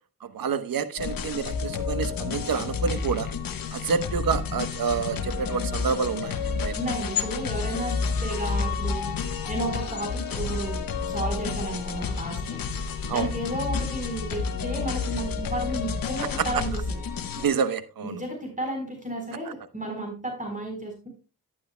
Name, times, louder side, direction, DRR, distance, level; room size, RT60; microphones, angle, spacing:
voice 1, 0.2-3.3 3.7-6.8 13.1-13.3 16.4-16.6 17.4-18.2, right 6 dB, 60° right, 1.0 m, -28 dB
sound 1, 1.0-17.5, left 5 dB, 60° left, 1.2 m, -30 dB
voice 2, 6.7-9.1 9.5-10.8 11.1-12.6 13.1-17.0 18.0-21.1, right 1 dB, 20° right, 4.0 m, -32 dB
11.0 x 10.0 x 2.2 m
cardioid pair, 55°, 38 cm